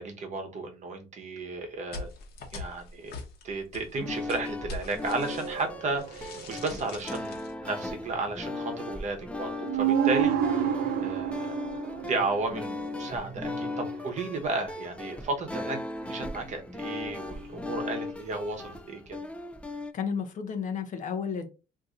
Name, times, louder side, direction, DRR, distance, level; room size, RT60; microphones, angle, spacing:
voice 1, 0.0-2.1 2.5-10.7 11.0-19.2, right 3 dB, 45° right, 0.9 m, -34 dB
sound 1, 1.9-5.7 6.0-7.5, left 3 dB, 70° left, 1.0 m, -43 dB
sound 2, 3.9-19.9, left 2 dB, 5° left, 0.3 m, -38 dB
sound 3, 5.3-6.9 9.3-9.4 9.6-14.1 17.2-17.8 18.5-18.8, right 8 dB, 70° right, 0.6 m, -30 dB
voice 2, 19.9-21.5, left 6 dB, 50° left, 0.7 m, -32 dB
2.6 x 2.6 x 3.6 m
cardioid pair, 110°, 17 cm